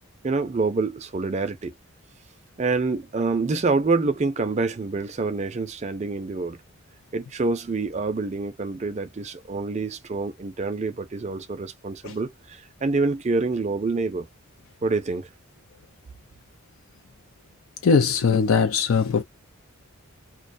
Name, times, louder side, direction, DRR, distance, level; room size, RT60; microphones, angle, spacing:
voice 1, 0.2-1.7 2.6-6.6 7.1-14.3 14.8-15.3, right 3 dB, 30° right, 0.4 m, -26 dB
voice 2, 17.8-19.2, left 5 dB, 70° left, 0.4 m, -20 dB
2.3 x 2.2 x 2.5 m
head